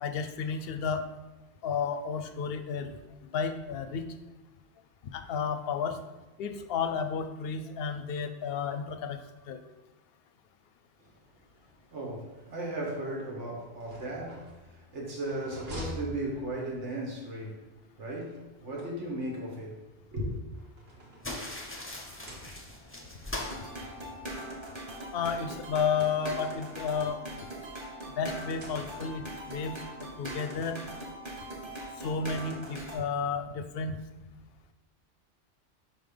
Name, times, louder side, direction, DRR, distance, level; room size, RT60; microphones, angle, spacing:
voice 1, 0.0-1.1 1.6-3.0 3.3-4.1 5.1-6.0 6.4-9.2 9.5-9.6 25.1-27.2 28.2-29.8 30.2-30.8 32.0-34.0, left 6 dB, 65° left, 0.7 m, -32 dB
voice 2, 11.9-17.7 17.9-20.4, right 1 dB, 80° right, 1.7 m, -36 dB
sound 1, 13.8-17.0 18.3-19.4 20.3-21.7 22.0-23.0 23.9-24.0 24.3-24.4 25.6-27.0 28.2-29.3, equal, 60° right, 1.4 m, -47 dB
sound 2, 21.2-24.6, left 1 dB, 15° left, 0.5 m, -41 dB
sound 3, 23.3-33.0, right 1 dB, 25° right, 1.1 m, -41 dB
5.5 x 3.7 x 5.0 m
omnidirectional pair, 1.2 m